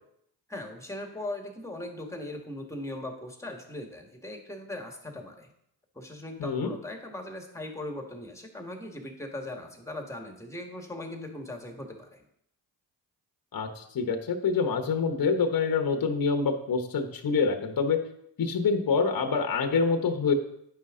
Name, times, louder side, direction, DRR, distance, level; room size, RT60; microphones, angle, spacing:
voice 1, 0.5-5.5 6.0-12.2, left 1 dB, 5° left, 3 dB, 1.8 m, -39 dB
voice 2, 6.4-6.8 13.5-18.0 18.4-20.3, left 5 dB, 45° left, 4 dB, 1.2 m, -26 dB
9.2 x 5.6 x 3.8 m, 0.72 s
supercardioid pair, 55°, 46 cm